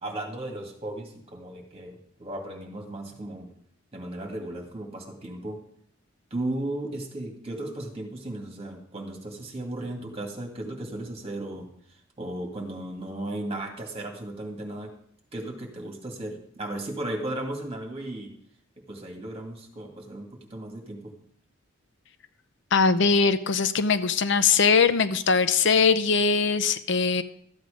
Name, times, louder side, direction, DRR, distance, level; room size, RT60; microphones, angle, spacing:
voice 1, 0.0-3.5 3.9-5.6 6.3-11.7 12.2-14.9 15.3-18.3 18.9-21.1, right 1 dB, 30° right, 1 dB, 2.2 m, -35 dB
voice 2, 22.7-27.2, left 5 dB, 60° left, 11 dB, 0.7 m, -21 dB
13.5 x 8.1 x 5.1 m, 0.68 s
head